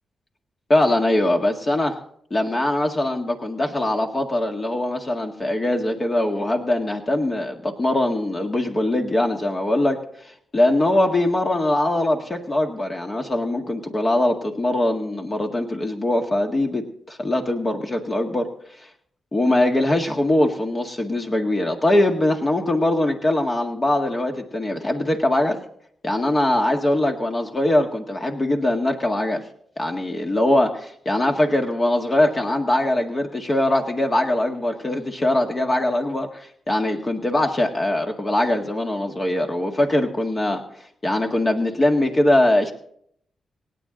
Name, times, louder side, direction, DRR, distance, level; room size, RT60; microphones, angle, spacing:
voice 1, 0.7-1.9 2.3-10.0 10.5-18.5 19.3-25.6 26.0-29.4 29.8-40.6 41.0-42.7, left 1 dB, 35° left, 2 dB, 1.9 m, -22 dB
26.0 x 9.1 x 4.0 m, 0.66 s
cardioid pair, 65°, 0 cm